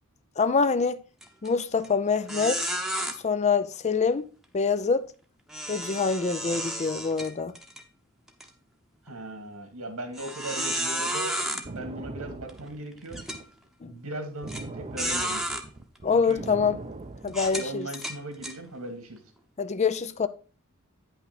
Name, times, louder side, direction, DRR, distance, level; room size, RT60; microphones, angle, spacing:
voice 1, 0.4-1.0 1.4-2.7 3.2-4.3 4.5-5.1 5.7-7.5 13.8-13.9 16.0-16.8 17.2-17.9 19.6-20.3, left 5 dB, 30° left, 0.5 m, -25 dB
sound 1, 1.2-1.5 1.8-1.9 2.3-3.1 5.5-7.8 8.3-8.4 9.1-9.2 10.2-11.6 12.5-12.6 13.1-13.4 14.5-14.6 15.0-15.6 16.3-16.5 17.3-18.5, right 1 dB, ahead, 1.0 m, -31 dB
voice 2, 9.1-13.2 13.9-15.4 16.1-16.4 17.2-19.2, right 1 dB, 85° right, 2.3 m, -38 dB
sound 2, 11.4-13.5 14.4-17.7, right 2 dB, 30° right, 0.6 m, -40 dB
9.3 x 5.8 x 4.1 m
head